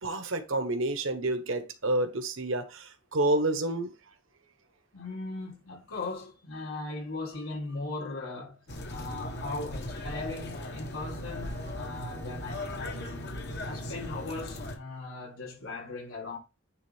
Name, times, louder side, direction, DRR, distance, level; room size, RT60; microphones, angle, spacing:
voice 1, 0.0-3.9, right 1 dB, 70° right, 1.1 m, -29 dB
voice 2, 4.9-8.6 8.9-13.3 13.6-16.4, left 3 dB, 85° left, 3.5 m, -39 dB
sound 1, 8.7-14.8, left 1 dB, 50° left, 1.2 m, -38 dB
9.7 x 3.7 x 3.4 m
head